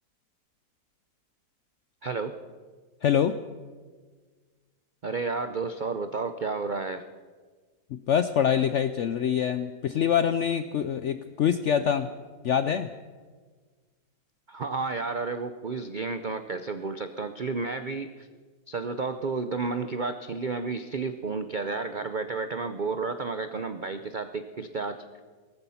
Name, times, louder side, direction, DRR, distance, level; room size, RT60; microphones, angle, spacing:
voice 1, 2.0-2.3 5.0-7.0 14.5-18.3 18.7-25.0, right 4 dB, 80° right, 9 dB, 0.4 m, -31 dB
voice 2, 3.0-3.4 7.9-12.1 12.4-12.9, left 8 dB, 75° left, 11 dB, 0.6 m, -25 dB
18.0 x 14.0 x 5.7 m, 1.5 s
omnidirectional pair, 1.9 m